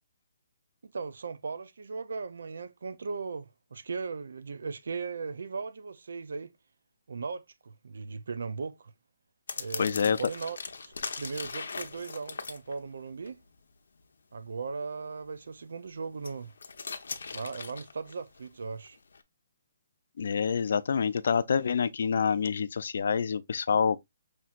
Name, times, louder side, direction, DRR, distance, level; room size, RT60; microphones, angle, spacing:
voice 1, 0.8-6.5 7.1-8.9 9.6-13.4 14.3-16.5 17.3-19.0, right 4 dB, 75° right, 0.4 m, -38 dB
sound 1, 9.5-13.3 16.0-18.5 18.8-19.2, left 4 dB, 85° left, 0.7 m, -39 dB
voice 2, 9.8-10.2 20.2-24.0, left 6 dB, 60° left, 0.4 m, -27 dB
5.8 x 2.9 x 2.4 m
hypercardioid pair, 170°, 0 cm